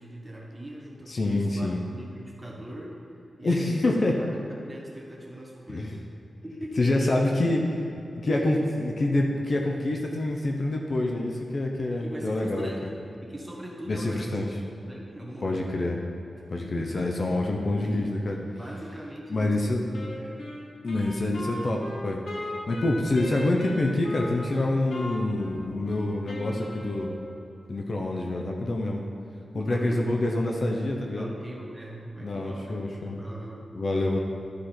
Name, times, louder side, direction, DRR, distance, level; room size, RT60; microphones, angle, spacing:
voice 1, 0.0-3.0 3.4-6.0 6.4-7.3 8.3-8.9 11.9-12.9 13.2-15.6 16.3-17.1 17.8-18.1 18.6-19.9 20.1-20.4 29.5-30.5 31.1-33.7, equal, 10° right, -3 dB, 1.3 m, -40 dB
voice 2, 1.1-1.8 3.4-4.1 5.7-5.9 6.8-7.6 8.2-8.6 8.8-12.7 13.9-14.5 15.4-16.0 16.5-18.4 19.3-19.8 20.8-22.2 22.7-27.2 27.7-29.0 29.5-31.3 32.2-33.2 33.7-34.2, left 2 dB, 45° left, 1 dB, 0.7 m, -26 dB
Wind instrument woodwind instrument, 19.9-27.4, left 1 dB, 75° left, 1.2 m, -38 dB
12.0 x 4.8 x 4.4 m, 2.8 s
wide cardioid pair, 145°, 0 cm